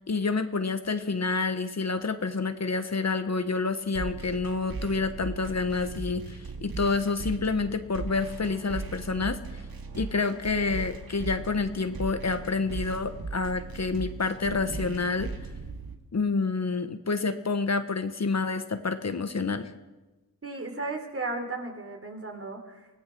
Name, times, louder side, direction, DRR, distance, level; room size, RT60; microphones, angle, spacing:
voice 1, 0.1-9.6 9.9-15.3 16.1-19.7, left 4 dB, 45° left, 8 dB, 1.3 m, -28 dB
sound 1, 3.9-15.9, right 4 dB, 70° right, 2.1 m, -38 dB
voice 2, 20.4-22.9, right 3 dB, 35° right, 4 dB, 3.6 m, -35 dB
24.5 x 17.0 x 6.2 m, 1.1 s
wide cardioid pair, 80°, 37 cm